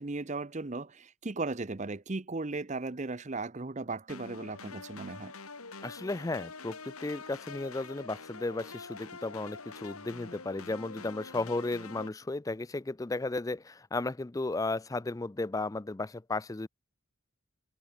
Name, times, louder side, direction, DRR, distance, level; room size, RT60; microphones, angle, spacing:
voice 1, 0.0-5.3, right 3 dB, 35° right, 0.7 m, -36 dB
sound 1, 4.1-12.1, left 4 dB, 90° left, 4.0 m, -46 dB
voice 2, 5.8-16.7, left 2 dB, 15° left, 0.4 m, -34 dB
head